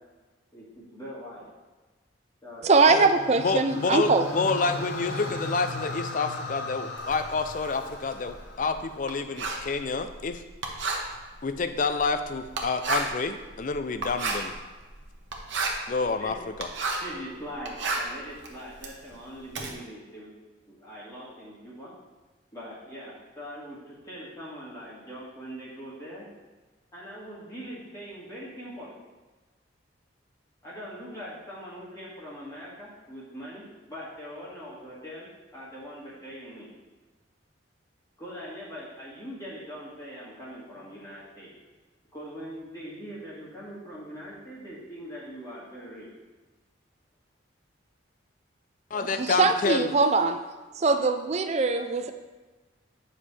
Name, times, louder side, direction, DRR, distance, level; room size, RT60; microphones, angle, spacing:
voice 1, 0.5-1.5 2.4-3.0 16.2-16.4 17.0-20.3 20.6-21.9 22.5-26.3 26.9-28.9 30.6-35.3 35.5-36.7 38.2-41.5 42.1-46.1, equal, 20° left, -9 dB, 1.8 m, -42 dB
voice 2, 2.6-4.2 49.2-50.4 50.8-52.1, right 3 dB, 35° right, 8 dB, 0.4 m, -22 dB
sound 1, 2.9-9.2, left 2 dB, 60° left, 0.9 m, -37 dB
voice 3, 3.4-10.4 11.4-14.5 15.9-16.7 48.9-49.9, left 4 dB, 40° left, 9 dB, 0.4 m, -28 dB
Writing, 7.0-17.2 17.5-19.7, right 3 dB, 65° right, 1.0 m, -33 dB
9.6 x 5.6 x 3.3 m, 1.2 s
head